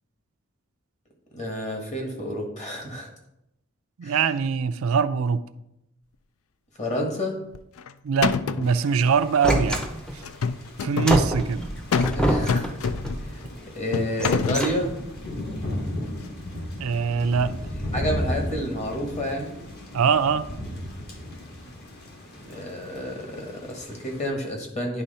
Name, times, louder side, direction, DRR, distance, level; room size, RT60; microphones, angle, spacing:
voice 1, 1.3-3.1 4.0-4.2 6.8-7.4 12.1-12.7 13.2-14.9 17.9-19.6 22.3-25.0, equal, 35° left, 1 dB, 1.6 m, -30 dB
voice 2, 4.0-5.4 8.0-9.8 10.1-10.2 10.8-11.6 16.8-17.6 19.9-20.5, right 6 dB, 85° right, 10 dB, 0.4 m, -23 dB
sound 1, 7.5-7.9 8.2-8.8 10.2-11.2 11.9-12.2 12.5-13.2 13.9-14.7, left 5 dB, 85° left, 0.4 m, -25 dB
Thunder / Rain, 8.6-24.3, equal, 50° left, 1.7 m, -36 dB
sound 2, 9.4-10.3 11.1-13.4 14.1-15.2, equal, 5° left, 0.6 m, -27 dB
10.0 x 3.6 x 5.5 m, 0.83 s
head